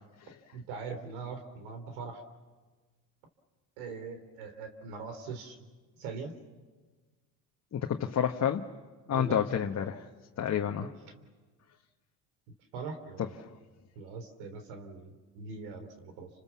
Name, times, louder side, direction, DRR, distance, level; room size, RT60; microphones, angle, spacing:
voice 1, 0.5-2.2 3.8-5.6 6.0-6.3 9.1-9.4 10.8-10.9 12.7-13.4 14.0-16.3, right 4 dB, 85° right, 7 dB, 3.8 m, -41 dB
voice 2, 7.7-8.6 9.1-10.0 10.4-10.9 13.2-13.5, left 9 dB, 40° left, 3 dB, 1.5 m, -30 dB
30.0 x 26.5 x 7.3 m, 1.3 s
supercardioid pair, 85°, 41 cm